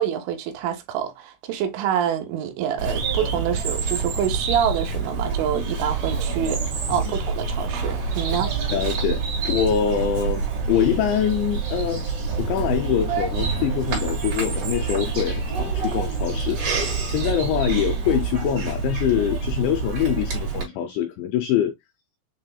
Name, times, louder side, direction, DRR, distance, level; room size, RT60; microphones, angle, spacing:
voice 1, 0.0-8.5, right 9 dB, 80° right, 3.2 m, -26 dB
Bird vocalization bird call bird song, 2.8-20.6, right 4 dB, 50° right, 3.0 m, -27 dB
sound 1, 5.9-18.9, right 6 dB, 65° right, 2.7 m, -43 dB
voice 2, 8.7-21.7, left 9 dB, 90° left, 2.5 m, -24 dB
sound 2, 13.1-21.2, left 2 dB, 60° left, 1.4 m, -47 dB
7.4 x 3.0 x 2.2 m
omnidirectional pair, 5.6 m